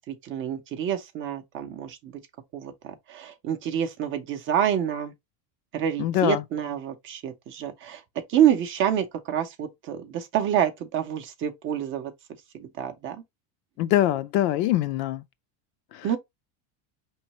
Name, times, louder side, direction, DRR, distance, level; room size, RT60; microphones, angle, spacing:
voice 1, 0.1-2.1 2.5-5.1 5.7-8.0 8.3-12.1 12.5-13.2 16.0-16.2, right 9 dB, 30° right, 0.4 m, -27 dB
voice 2, 6.0-6.4 13.8-15.2, left 14 dB, 85° left, 0.7 m, -23 dB
5.3 x 3.1 x 2.8 m
cardioid pair, 170°, 45 cm